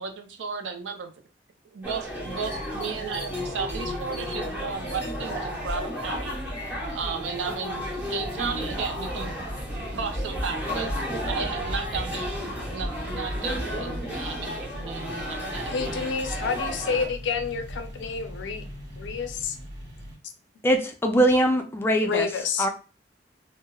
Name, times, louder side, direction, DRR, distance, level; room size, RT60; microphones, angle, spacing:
voice 1, 0.0-1.1 1.8-6.4 6.9-9.3 10.0-12.3 12.7-16.0, right 5 dB, 85° right, 5 dB, 0.4 m, -34 dB
sound 1, 1.8-17.1, equal, 10° right, 0.8 m, -33 dB
sound 2, 2.2-20.2, equal, 70° right, 1.0 m, -42 dB
sound 3, 8.2-14.2, equal, 55° right, 0.7 m, -39 dB
voice 2, 15.7-18.7 19.0-19.6 22.0-22.7, left 5 dB, 75° left, 7 dB, 0.4 m, -29 dB
voice 3, 20.6-22.3 22.6-22.7, right 1 dB, 15° left, 3 dB, 0.4 m, -22 dB
2.9 x 2.0 x 2.2 m, 0.35 s
head